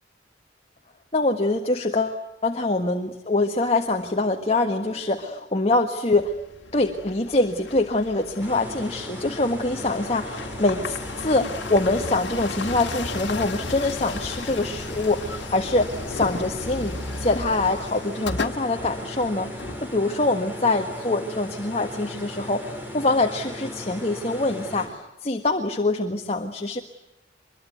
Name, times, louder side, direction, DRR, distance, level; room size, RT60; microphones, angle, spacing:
voice 1, 1.1-6.3 6.7-26.8, left 2 dB, 35° left, 4 dB, 1.6 m, -24 dB
sound 1, 6.2-20.3, left 3 dB, 70° left, 1.9 m, -35 dB
sound 2, 8.4-24.9, equal, 10° right, 5.8 m, -37 dB
25.0 x 22.5 x 9.4 m, 0.93 s
head